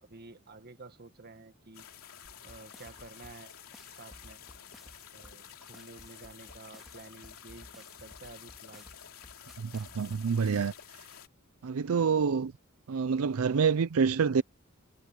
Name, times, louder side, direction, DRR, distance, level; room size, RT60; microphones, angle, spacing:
voice 1, 0.0-1.9 2.4-3.5 3.9-4.4 5.1-8.9, right 3 dB, 50° right, 1.7 m, -51 dB
sound 1, 1.7-11.3, left 9 dB, 85° left, 2.8 m, -51 dB
sound 2, 2.2-10.2, equal, ahead, 3.2 m, -55 dB
voice 2, 9.6-10.7 11.6-12.5 12.9-14.4, right 6 dB, 80° right, 0.5 m, -27 dB
head